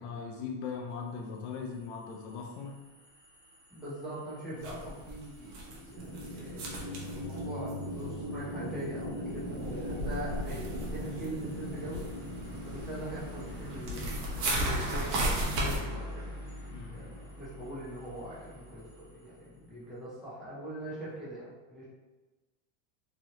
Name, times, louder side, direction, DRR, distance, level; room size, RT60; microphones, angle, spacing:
voice 1, 0.0-2.8 4.5-4.8 16.7-17.1, left 5 dB, 65° left, 1 dB, 0.5 m, -40 dB
sound 1, 1.2-19.7, left 1 dB, 20° right, 1.3 m, -48 dB
voice 2, 3.7-12.0 12.6-16.3 16.9-21.9, right 1 dB, ahead, -12 dB, 1.0 m, -42 dB
sound 2, 4.6-8.4 8.7-15.8, right 1 dB, 60° right, 0.9 m, -36 dB
sound 3, 6.0-18.1, equal, 40° right, 0.6 m, -41 dB
3.0 x 2.7 x 2.7 m, 1.2 s
supercardioid pair, 155°, 36 cm